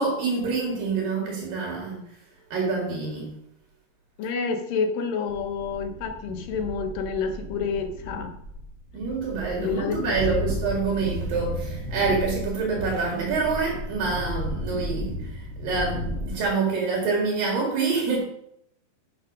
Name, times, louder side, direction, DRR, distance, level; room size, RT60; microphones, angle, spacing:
voice 1, 0.0-2.0 2.5-3.4 8.9-18.2, right 4 dB, 75° right, -3 dB, 3.7 m, -26 dB
voice 2, 4.2-8.3 9.6-10.1, left 5 dB, 75° left, 5 dB, 2.8 m, -28 dB
sound 1, 5.3-16.4, equal, 40° right, 0.9 m, -34 dB
9.7 x 6.5 x 5.3 m, 0.75 s
omnidirectional pair, 4.1 m